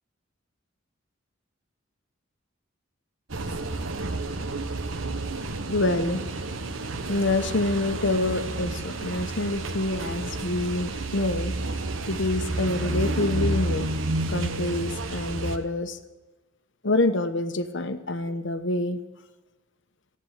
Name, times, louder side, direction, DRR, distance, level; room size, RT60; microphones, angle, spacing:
sound 1, 3.3-15.6, right 2 dB, 75° right, 1.3 m, -30 dB
voice 1, 5.7-6.2 7.1-11.6 12.1-13.9 14.3-16.0 16.8-19.0, left 2 dB, 65° left, 11 dB, 1.1 m, -26 dB
14.5 x 10.0 x 8.2 m, 1.2 s
head